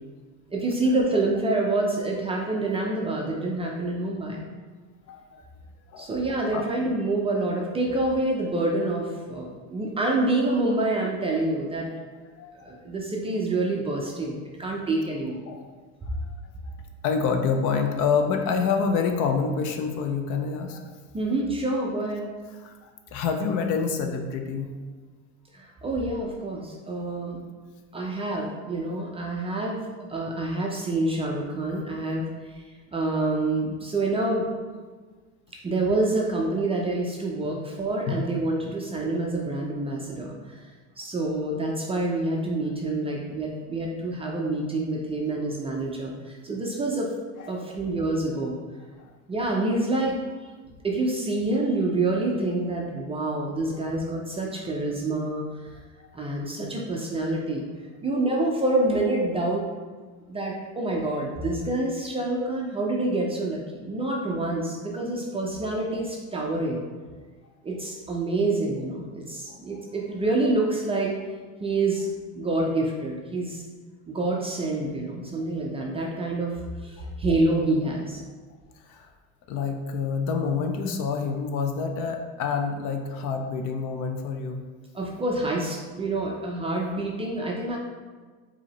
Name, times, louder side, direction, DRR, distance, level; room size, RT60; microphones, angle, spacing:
voice 1, 0.5-4.4 6.0-11.9 12.6-15.5 16.0-16.1 21.1-22.2 25.5-27.4 27.9-29.8 30.1-32.7 32.9-34.5 35.6-40.7 41.0-47.1 47.5-48.6 49.3-50.2 50.8-55.4 56.1-57.7 58.0-59.6 60.3-66.8 67.6-71.1 71.6-73.6 74.1-78.2 84.9-87.8, right 2 dB, 15° right, -2 dB, 0.4 m, -27 dB
voice 2, 5.1-5.4 5.9-6.6 12.4-12.8 15.5-15.7 16.7-16.8 17.0-20.9 22.6-24.7 38.1-38.2 38.7-38.8 47.4-47.5 49.0-49.1 56.0-56.1 69.5-69.6 77.0-77.1 78.9-79.1 79.5-84.6, left 5 dB, 50° left, 5 dB, 0.5 m, -27 dB
4.7 x 2.8 x 3.0 m, 1.4 s
supercardioid pair, 115°, 39 cm